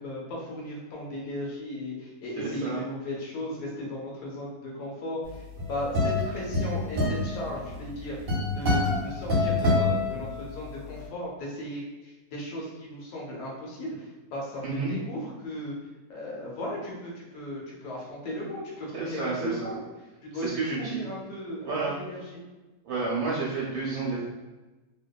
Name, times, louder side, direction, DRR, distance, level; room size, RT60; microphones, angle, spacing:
voice 1, 0.0-8.2 8.5-15.7 16.1-19.8 20.2-22.4, left 1 dB, 80° left, -4 dB, 1.2 m, -36 dB
voice 2, 2.4-2.8 14.6-14.9 18.9-19.8 20.3-21.1 21.6-21.9 22.8-24.2, right 3 dB, 75° right, -5 dB, 1.0 m, -30 dB
sound 1, 5.3-10.8, left 2 dB, 45° right, 0.9 m, -26 dB
2.7 x 2.2 x 2.2 m, 1.2 s
omnidirectional pair, 1.6 m